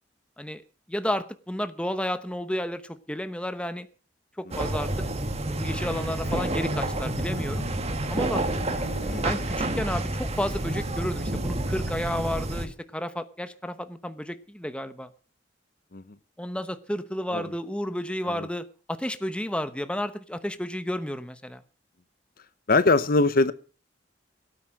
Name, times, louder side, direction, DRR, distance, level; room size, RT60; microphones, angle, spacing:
voice 1, 0.9-3.9 4.4-4.9 5.5-7.7 8.1-8.4 9.2-15.1 16.4-21.6, left 1 dB, 5° left, 11 dB, 0.9 m, -32 dB
sound 1, 4.5-12.7, right 1 dB, 35° right, 1.9 m, -29 dB
sound 2, 5.7-9.6, left 1 dB, 75° left, 1.4 m, -44 dB
voice 2, 22.7-23.5, left 3 dB, 55° left, 15 dB, 0.8 m, -22 dB
17.0 x 9.2 x 6.3 m, 0.37 s
head